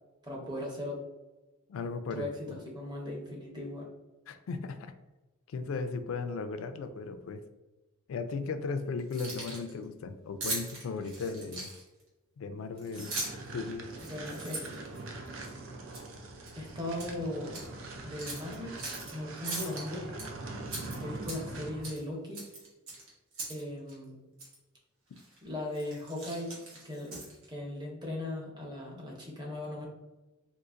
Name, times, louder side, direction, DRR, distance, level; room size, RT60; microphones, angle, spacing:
voice 1, 0.2-1.0 2.1-2.5 2.7-3.9 14.0-14.7 16.5-17.5 18.0-18.8 19.1-20.3 21.0-22.4 23.5-24.2 25.4-26.5 26.8-27.1 27.5-29.9, left 1 dB, 20° right, -1 dB, 0.7 m, -38 dB
voice 2, 1.7-2.6 4.3-4.9 5.5-7.4 8.1-11.7 12.4-13.1 13.5-13.9, left 4 dB, 75° left, 10 dB, 0.3 m, -36 dB
Keys jangling, 9.0-9.7 10.4-12.0 12.8-13.5 13.9-15.5 15.9-16.1 16.5-17.1 17.5-17.6 18.2-19.1 19.4-20.3 20.7-21.6 21.8-22.0 22.3-23.6 23.9-24.0 24.4-24.6 25.2-25.4 25.7-27.5, right 2 dB, 85° right, 1.1 m, -40 dB
sound 1, 12.9-21.9, right 2 dB, 65° right, 0.5 m, -43 dB
3.8 x 2.5 x 2.4 m, 1.1 s
head